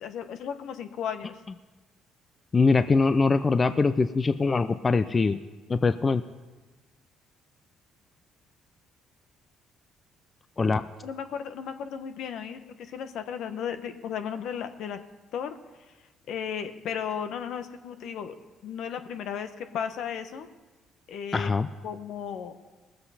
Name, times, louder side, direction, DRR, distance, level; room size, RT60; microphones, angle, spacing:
voice 1, 0.0-1.4 11.0-15.0 15.3-15.5 16.3-18.3 18.6-20.5 21.1-21.5 21.8-22.6, left 8 dB, 70° left, 9 dB, 0.9 m, -35 dB
voice 2, 2.5-5.4 5.7-6.2 10.6-10.8 21.3-21.7, left 4 dB, 35° left, 12 dB, 0.5 m, -22 dB
20.0 x 7.9 x 4.2 m, 1.2 s
supercardioid pair, 70°, 0 cm